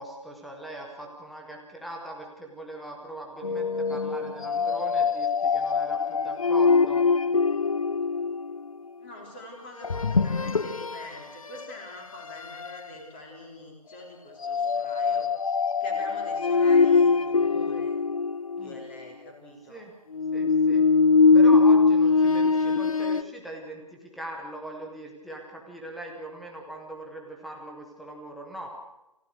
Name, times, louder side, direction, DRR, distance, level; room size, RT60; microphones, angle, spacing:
voice 1, 0.0-7.0 18.6-18.7 19.7-19.9 20.3-20.8 21.3-28.7, right 1 dB, ahead, 1 dB, 0.7 m, -40 dB
sound 1, 3.4-8.7 9.8-11.1 11.5-11.7 12.3-12.8 14.4-18.9 20.1-23.2, left 4 dB, 55° left, 0.8 m, -22 dB
voice 2, 9.0-15.3 15.8-18.0 18.6-19.8, left 1 dB, 15° left, 1 dB, 3.8 m, -44 dB
28.0 x 15.5 x 6.5 m, 0.92 s
figure-of-eight pair, 165°, 21 cm